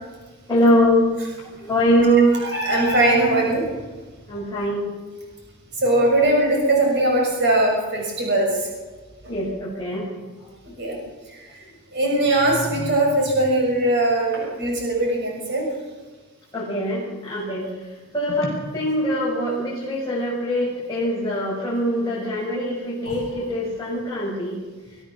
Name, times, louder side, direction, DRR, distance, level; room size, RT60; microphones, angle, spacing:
voice 1, 0.5-1.1 1.6-2.3 4.3-4.9 9.3-10.1 16.5-17.7 18.1-24.6, equal, 15° left, -8 dB, 7.2 m, -22 dB
voice 2, 2.5-3.6 5.8-8.5 9.2-9.4 10.8-11.0 11.9-15.6 23.1-23.2, right 1 dB, 55° right, 0 dB, 6.4 m, -20 dB
25.0 x 16.5 x 7.3 m, 1.3 s
head